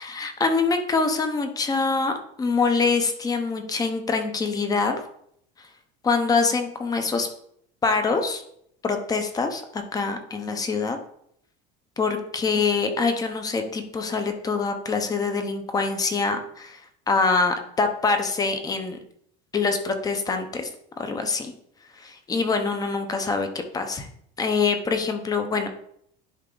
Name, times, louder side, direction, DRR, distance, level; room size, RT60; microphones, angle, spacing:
voice 1, 0.0-5.0 6.0-7.3 7.8-8.4 8.8-11.0 12.0-16.8 17.1-19.0 19.5-20.7 21.0-21.5 22.0-23.5 23.7-24.1 24.4-25.7, left 4 dB, 20° left, 6 dB, 0.8 m, -24 dB
10.5 x 3.5 x 3.9 m, 0.70 s
cardioid pair, 155°, 19 cm